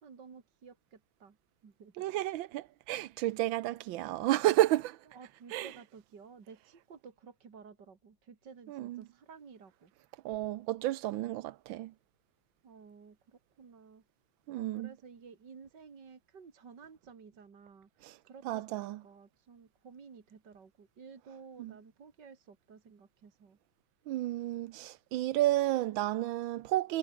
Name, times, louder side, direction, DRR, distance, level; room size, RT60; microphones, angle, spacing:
voice 1, 0.0-1.4 1.6-2.1 5.1-9.9 12.6-14.0 14.5-23.6, right 5 dB, 65° right, 2.9 m, -54 dB
voice 2, 2.0-5.0 5.5-5.7 8.7-9.0 10.2-11.9 14.5-14.9 18.0-18.2 18.4-19.0 21.6-21.7 24.1-27.0, right 15 dB, 85° right, 1.5 m, -31 dB
omnidirectional pair, 2.1 m